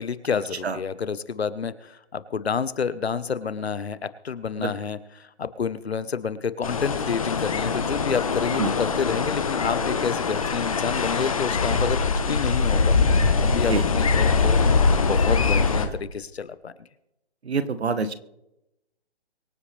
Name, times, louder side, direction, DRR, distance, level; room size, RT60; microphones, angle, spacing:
voice 1, 0.0-12.9 13.4-14.6 15.0-16.7, left 6 dB, 70° left, 14 dB, 1.2 m, -29 dB
sound 1, 6.6-15.9, left 4 dB, 30° left, 1.1 m, -22 dB
voice 2, 17.4-18.1, right 4 dB, 75° right, 12 dB, 1.3 m, -26 dB
24.0 x 8.2 x 3.4 m, 0.88 s
hypercardioid pair, 175°, 33 cm